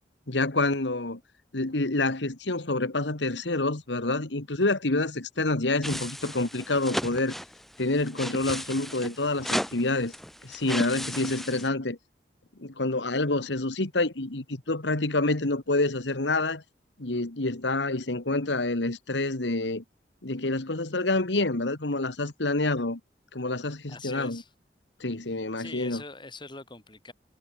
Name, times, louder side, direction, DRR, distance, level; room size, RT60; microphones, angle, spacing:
voice 1, 0.3-1.2 1.5-7.3 7.8-10.1 10.4-12.0 12.6-16.6 17.0-19.8 20.2-23.0 23.3-24.4 25.0-26.0, left 2 dB, 85° left, 1.9 m, -27 dB
sound 1, 5.8-11.7, equal, ahead, 3.4 m, -35 dB
voice 2, 23.9-24.5 25.6-27.1, left 3 dB, 25° left, 4.2 m, -43 dB
head